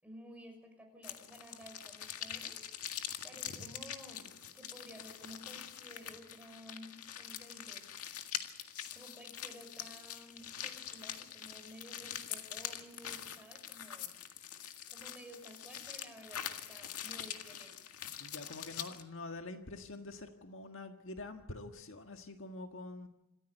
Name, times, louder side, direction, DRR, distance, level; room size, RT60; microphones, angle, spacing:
voice 1, 0.0-2.6 3.2-8.0 8.9-14.2 14.9-17.9, equal, 5° right, 3 dB, 6.0 m, -54 dB
sound 1, 1.0-19.0, left 10 dB, 80° left, 1.9 m, -44 dB
voice 2, 18.2-23.1, left 2 dB, 60° left, 5 dB, 1.7 m, -46 dB
27.0 x 14.5 x 8.1 m, 0.96 s
head